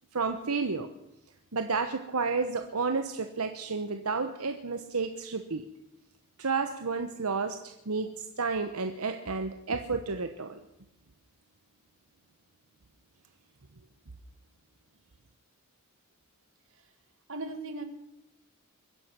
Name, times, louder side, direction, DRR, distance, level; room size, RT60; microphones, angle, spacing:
voice 1, 0.1-0.9 1.5-5.7 6.4-10.6, right 4 dB, 80° right, 7 dB, 1.0 m, -31 dB
voice 2, 17.3-17.8, right 2 dB, 60° right, 7 dB, 1.9 m, -38 dB
23.5 x 10.0 x 6.0 m, 0.88 s
head